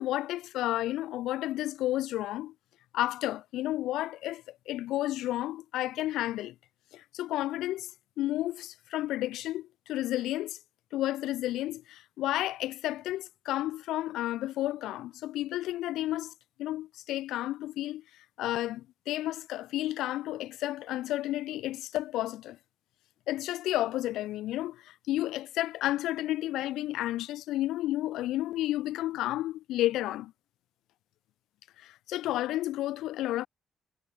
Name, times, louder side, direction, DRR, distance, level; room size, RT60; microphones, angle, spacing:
voice 1, 0.0-2.5 2.9-6.5 6.9-7.9 8.2-10.6 10.9-16.3 16.6-18.0 18.4-22.6 23.3-30.3 31.8-33.5, left 15 dB, 90° left, 1.0 m, -32 dB
cardioid pair, 90°, 0 cm